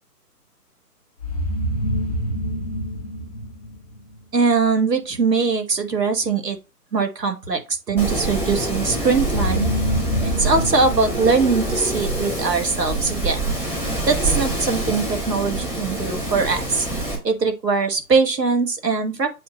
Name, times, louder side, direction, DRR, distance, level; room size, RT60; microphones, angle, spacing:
sound 1, 1.2-4.2 9.2-12.4, equal, 25° left, 0.4 m, -26 dB
voice 1, 4.3-6.6 6.9-9.7 10.2-13.5 14.1-16.9 17.2-19.3, right 4 dB, 85° right, 1.7 m, -21 dB
Wind, 8.0-17.1, right 2 dB, 5° right, 0.8 m, -26 dB
7.7 x 2.7 x 4.8 m
figure-of-eight pair, 140°, 48 cm